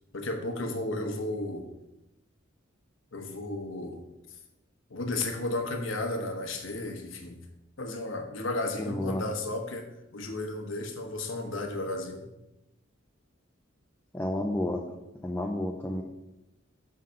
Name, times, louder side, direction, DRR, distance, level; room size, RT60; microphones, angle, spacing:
voice 1, 0.1-1.7 3.1-4.0 4.9-7.4 7.8-9.9 10.1-12.3, left 2 dB, 75° left, 4 dB, 1.0 m, -33 dB
voice 2, 8.8-9.3 14.1-14.9 15.2-16.0, left 1 dB, 10° left, 1 dB, 0.4 m, -31 dB
6.3 x 3.8 x 5.6 m, 0.94 s
head